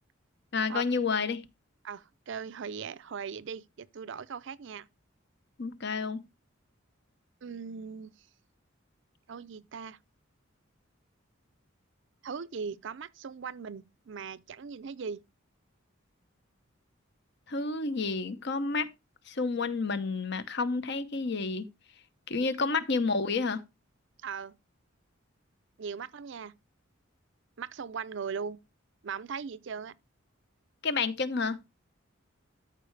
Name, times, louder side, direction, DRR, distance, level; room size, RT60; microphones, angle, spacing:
voice 1, 0.5-1.4 5.6-6.2 17.5-18.9 19.3-21.6 22.3-23.6 30.8-31.6, left 4 dB, 55° left, 0.8 m, -30 dB
voice 2, 1.8-4.9 7.4-8.1 9.3-10.0 12.2-15.2 24.2-24.6 25.8-26.6 27.6-28.6 29.0-29.9, right 6 dB, 65° right, 0.5 m, -39 dB
13.5 x 4.7 x 3.2 m
head